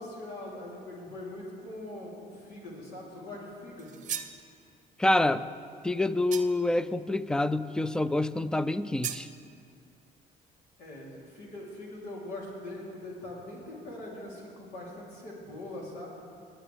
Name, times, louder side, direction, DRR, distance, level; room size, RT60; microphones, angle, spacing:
voice 1, 0.0-4.0 10.8-16.1, left 1 dB, 90° left, -4 dB, 3.2 m, -42 dB
sound 1, 3.8-4.4 6.3-6.8 9.0-9.3, right 9 dB, 50° right, 0.7 m, -37 dB
voice 2, 5.0-5.5 5.8-9.3, left 2 dB, 5° left, 15 dB, 0.3 m, -27 dB
22.0 x 8.8 x 3.4 m, 2.3 s
cardioid pair, 110°, 17 cm